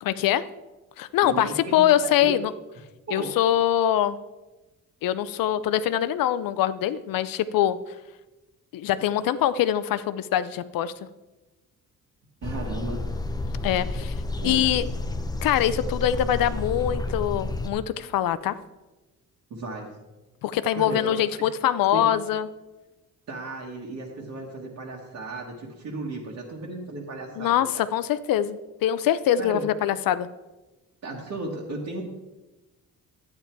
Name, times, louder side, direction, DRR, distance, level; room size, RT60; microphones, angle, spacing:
voice 1, 0.0-0.4 1.0-2.5 3.1-4.2 5.0-7.8 8.7-10.9 13.6-14.1 14.4-14.9 15.4-18.6 20.4-22.5 27.4-30.3, left 11 dB, 85° left, 13 dB, 0.6 m, -23 dB
voice 2, 1.2-2.3 3.1-3.3 12.4-13.0 14.4-14.6 19.5-20.0 20.8-21.1 21.9-22.0 23.3-27.8 29.4-29.6 31.0-32.0, right 2 dB, 55° right, -2 dB, 1.6 m, -35 dB
sound 1, 12.4-17.7, left 2 dB, 10° left, 0.5 m, -30 dB
11.5 x 8.8 x 4.6 m, 1.1 s
wide cardioid pair, 170°, 33 cm